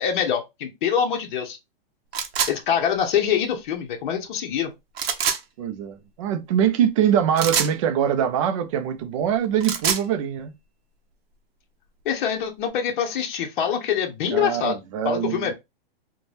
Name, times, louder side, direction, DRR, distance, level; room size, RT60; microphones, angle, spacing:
voice 1, 0.0-1.6 2.5-4.7 12.0-14.8 15.0-15.5, left 8 dB, 55° left, 0.7 m, -24 dB
sound 1, 2.1-2.5 4.9-5.4 7.4-7.7 9.4-10.0, right 7 dB, 90° right, 0.7 m, -24 dB
voice 2, 5.6-10.5 14.3-15.5, right 9 dB, 35° right, 0.4 m, -23 dB
2.5 x 2.2 x 3.2 m
supercardioid pair, 160°, 30 cm